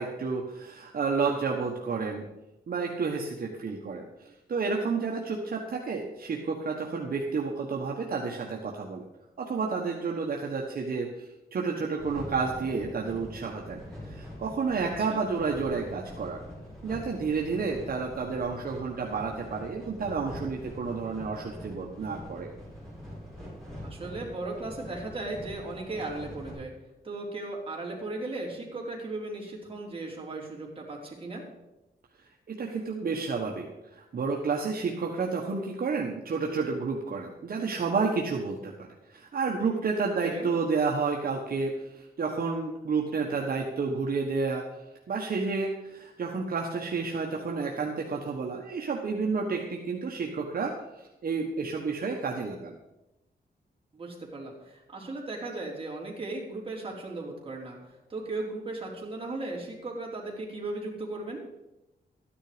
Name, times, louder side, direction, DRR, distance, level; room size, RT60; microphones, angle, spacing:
voice 1, 0.0-2.2 2.7-9.0 9.4-13.8 14.1-16.4 16.8-22.5 32.5-33.6 33.9-44.6 45.1-52.7, right 4 dB, 60° right, 0 dB, 1.4 m, -30 dB
sound 1, 12.0-26.5, equal, ahead, 5.7 m, -44 dB
voice 2, 15.0-15.3 23.8-26.7 27.0-31.4 40.2-40.5 53.9-61.4, right 2 dB, 30° right, -2 dB, 3.7 m, -37 dB
13.0 x 10.0 x 5.1 m, 0.95 s
wide cardioid pair, 125°, 17 cm